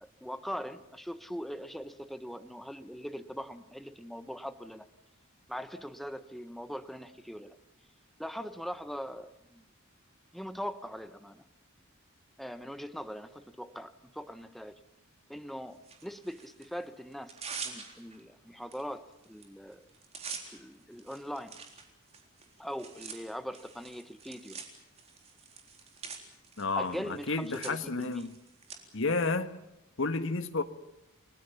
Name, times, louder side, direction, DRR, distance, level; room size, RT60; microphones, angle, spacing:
voice 1, 0.0-4.9 5.5-7.6 8.2-9.6 10.3-11.4 12.4-14.8 15.3-17.3 17.6-19.8 20.5-21.5 22.6-24.6 26.7-28.3, equal, ahead, 1.0 m, -41 dB
Tearing, 15.8-16.7 17.1-18.2 18.7-18.8 19.1-19.4 19.7-28.8, right 5 dB, 30° right, 3.9 m, -45 dB
voice 2, 26.6-28.4 28.9-29.6 30.0-30.6, left 3 dB, 60° left, 1.5 m, -31 dB
30.0 x 20.0 x 7.0 m
head